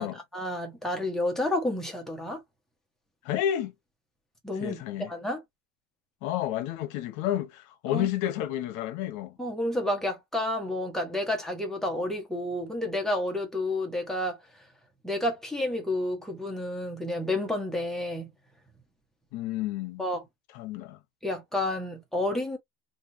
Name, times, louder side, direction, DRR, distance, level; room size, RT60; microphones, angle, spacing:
voice 1, 0.3-2.4 4.4-5.4 7.9-8.1 9.4-14.4 15.0-18.3 20.0-20.2 21.2-22.6, left 1 dB, ahead, 0.9 m, -30 dB
voice 2, 3.2-3.7 4.6-5.1 6.2-9.4 19.3-20.0 20.5-21.0, left 12 dB, 65° left, 1.0 m, -30 dB
3.4 x 2.6 x 2.6 m
cardioid pair, 165°, 32 cm